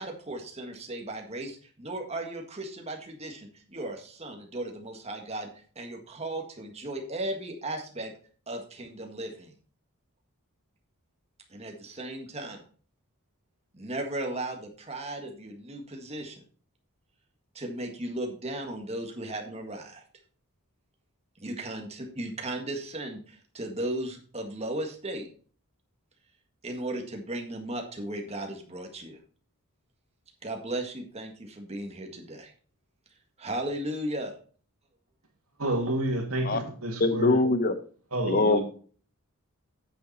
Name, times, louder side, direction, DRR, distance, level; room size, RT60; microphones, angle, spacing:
voice 1, 0.0-5.5 5.8-8.1 8.5-9.5 11.5-12.6 13.7-16.4 17.6-20.0 21.4-25.3 26.6-29.2 30.4-32.5 33.4-34.3, right 1 dB, 30° right, 1.8 m, -36 dB
voice 2, 35.6-37.4 38.1-38.6, right 1 dB, 70° right, 2.5 m, -29 dB
voice 3, 37.0-37.7 38.3-38.6, left 2 dB, 40° left, 0.8 m, -22 dB
9.3 x 6.8 x 4.2 m
head